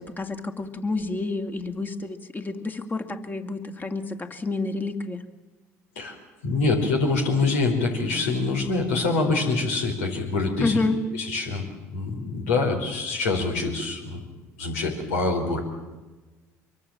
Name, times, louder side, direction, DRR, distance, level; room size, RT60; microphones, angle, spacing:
voice 1, 0.0-5.2 10.6-11.0, left 3 dB, 25° left, 7 dB, 2.4 m, -29 dB
voice 2, 6.4-10.8 11.1-14.2 14.6-15.6, left 3 dB, 80° left, 3 dB, 4.6 m, -25 dB
24.5 x 23.5 x 7.4 m, 1.2 s
hypercardioid pair, 60°, 8 cm